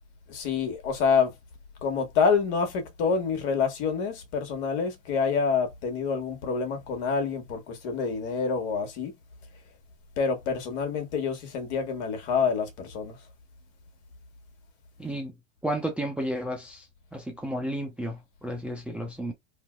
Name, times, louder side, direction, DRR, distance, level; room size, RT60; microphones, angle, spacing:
voice 1, 0.3-1.3 1.8-9.1 10.2-13.2, left 5 dB, 55° left, 1.3 m, -27 dB
voice 2, 15.0-15.3 15.6-19.3, right 1 dB, 5° right, 0.5 m, -32 dB
2.8 x 2.7 x 2.2 m
hypercardioid pair, 110°, 38 cm